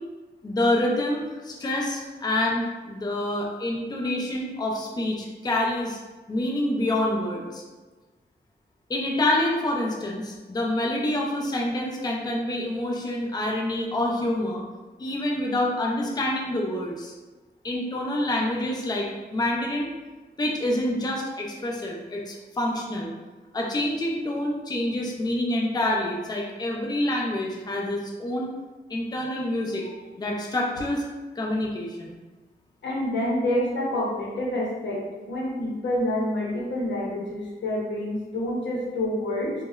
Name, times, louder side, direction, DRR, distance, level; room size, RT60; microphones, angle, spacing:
voice 1, 0.4-6.0 6.3-7.6 8.9-14.6 15.0-17.1 17.6-19.9 20.4-23.1 23.5-28.5 28.9-29.8 30.2-31.0 31.4-32.2, left 1 dB, 20° left, -1 dB, 0.5 m, -27 dB
voice 2, 32.8-39.5, left 1 dB, 85° left, -4 dB, 0.7 m, -27 dB
3.2 x 2.1 x 2.2 m, 1.3 s
cardioid pair, 70°, 18 cm